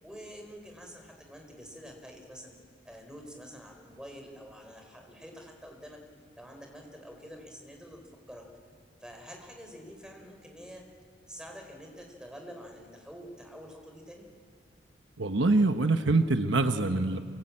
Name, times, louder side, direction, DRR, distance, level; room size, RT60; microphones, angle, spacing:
voice 1, 0.0-2.5 2.8-6.0 6.4-8.4 9.0-10.8 11.3-14.3, equal, 5° right, 3 dB, 4.6 m, -47 dB
voice 2, 15.2-17.2, right 2 dB, 75° right, 8 dB, 1.1 m, -24 dB
27.0 x 25.0 x 8.8 m, 2.1 s
head